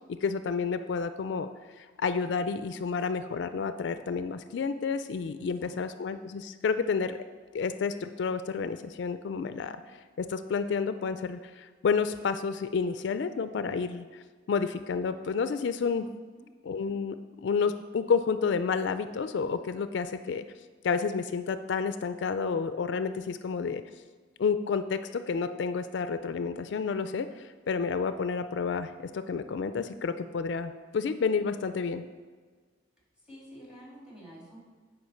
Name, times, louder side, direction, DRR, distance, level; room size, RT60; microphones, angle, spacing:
voice 1, 0.1-1.5 1.8-7.2 7.5-9.8 10.2-14.2 14.5-16.1 16.6-17.2 17.4-20.4 20.8-23.8 24.4-32.0, left 5 dB, 65° left, 11 dB, 0.3 m, -30 dB
voice 2, 5.3-5.7 16.3-16.5 33.2-34.6, equal, 5° right, -4 dB, 2.6 m, -49 dB
9.4 x 5.0 x 6.3 m, 1.5 s
head